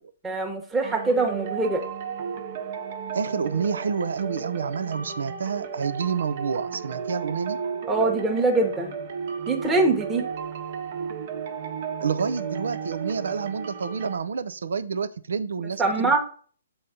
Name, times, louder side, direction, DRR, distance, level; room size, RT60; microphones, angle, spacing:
voice 1, 0.2-1.8 7.9-8.9 9.5-10.3 15.8-16.2, right 3 dB, 10° right, 0 dB, 1.2 m, -23 dB
sound 1, 0.8-14.2, right 6 dB, 50° right, 1.3 m, -34 dB
voice 2, 3.1-7.6 12.0-16.2, right 6 dB, 75° right, 12 dB, 0.6 m, -28 dB
7.2 x 4.2 x 5.1 m, 0.43 s
hypercardioid pair, 135°, 0 cm